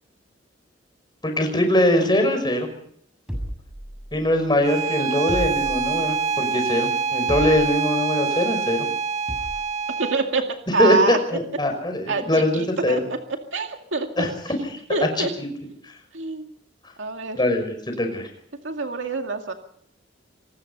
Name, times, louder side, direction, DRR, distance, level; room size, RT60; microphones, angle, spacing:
voice 1, 1.2-2.7 4.1-8.9 10.8-13.0 14.2-14.3 14.6-14.7 15.2-15.5 17.4-18.3, left 1 dB, 25° left, 6 dB, 5.7 m, -22 dB
sound 1, 3.3-4.4 5.3-6.2 7.3-8.0 9.3-9.8, equal, 5° right, 7.0 m, -33 dB
Bowed string instrument, 4.6-10.2, right 5 dB, 35° right, 1.6 m, -26 dB
voice 2, 10.0-10.5 10.7-11.2 12.1-13.2 13.5-14.3 14.9-15.3 16.1-16.5 17.0-17.4 18.6-19.5, right 3 dB, 80° right, 4 dB, 2.2 m, -25 dB
26.0 x 20.0 x 5.5 m, 0.65 s
head